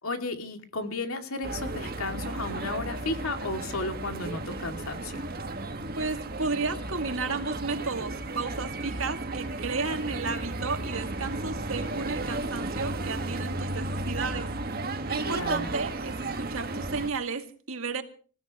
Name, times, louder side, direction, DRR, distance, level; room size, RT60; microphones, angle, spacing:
voice 1, 0.0-5.2 15.2-15.7, left 2 dB, 80° left, 6 dB, 2.6 m, -34 dB
sound 1, 1.4-17.1, right 2 dB, 45° right, 1.7 m, -34 dB
voice 2, 6.0-14.5 15.1-18.0, right 4 dB, 70° right, 6 dB, 2.3 m, -33 dB
27.0 x 16.5 x 3.1 m, 0.40 s
head